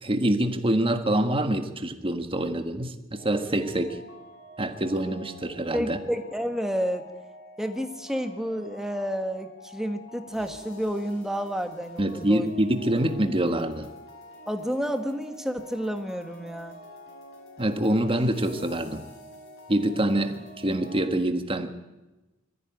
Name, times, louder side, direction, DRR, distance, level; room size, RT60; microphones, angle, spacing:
voice 1, 0.0-4.0 4.6-6.0 12.0-13.9 17.6-19.0 19.7-21.7, right 1 dB, 25° right, 7 dB, 1.6 m, -25 dB
sound 1, 3.1-21.0, left 1 dB, 65° left, 6.1 m, -47 dB
voice 2, 5.7-7.1 7.6-12.5 14.5-16.8, equal, ahead, 6 dB, 1.5 m, -30 dB
21.0 x 14.5 x 9.2 m, 1.1 s
head